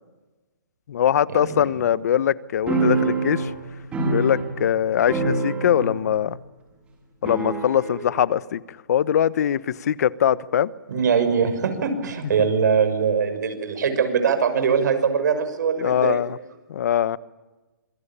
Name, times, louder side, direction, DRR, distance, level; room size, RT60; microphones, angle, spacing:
voice 1, 0.9-3.5 4.1-6.4 7.2-10.7 12.4-12.5 15.8-16.4 16.7-17.2, left 9 dB, 50° left, 1.1 m, -22 dB
sound 1, 2.7-4.8 5.1-6.1 6.3-6.4 7.3-8.1, right 3 dB, 10° right, 7.0 m, -25 dB
voice 2, 10.9-16.2, right 6 dB, 60° right, 6.2 m, -22 dB
27.0 x 23.5 x 8.8 m
hypercardioid pair, 155°, 11 cm